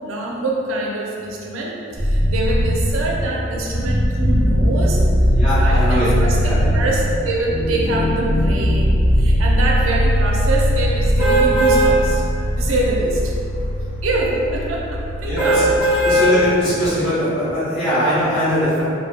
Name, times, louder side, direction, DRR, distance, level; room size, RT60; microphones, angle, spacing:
voice 1, 0.0-5.0 5.5-12.3 12.6-13.3 14.0-15.8, right 2 dB, 75° right, -3 dB, 0.4 m, -25 dB
sound 1, 2.0-16.0, equal, 55° left, 0.8 m, -19 dB
voice 2, 5.3-6.1 6.4-6.9 15.2-15.6 16.0-18.8, equal, 25° left, -14 dB, 1.0 m, -21 dB
sound 2, 11.2-11.9 12.4-12.6 15.4-16.3 16.9-17.0, right 1 dB, 5° right, 0.9 m, -17 dB
2.6 x 2.0 x 2.4 m, 2.6 s
head